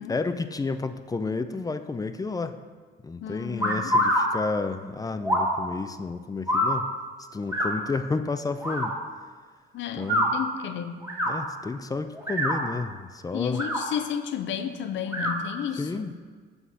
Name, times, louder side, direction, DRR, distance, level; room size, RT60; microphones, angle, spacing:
voice 1, 0.0-2.6 3.0-6.9 7.3-9.0 10.0-10.3 11.3-13.6 15.8-16.1, left 3 dB, 20° left, 10 dB, 0.4 m, -31 dB
voice 2, 3.2-4.0 9.7-11.1 13.3-16.2, left 8 dB, 70° left, 9 dB, 0.6 m, -32 dB
sound 1, 3.6-4.2 5.2-5.5 6.5-6.8 7.5-7.7 8.6-8.9 10.0-10.3 11.0-11.3 12.1-12.6 13.5-13.8 15.1-15.3, equal, 15° right, 1.6 m, -24 dB
5.7 x 4.0 x 6.2 m, 1.5 s
cardioid pair, 90°, 20 cm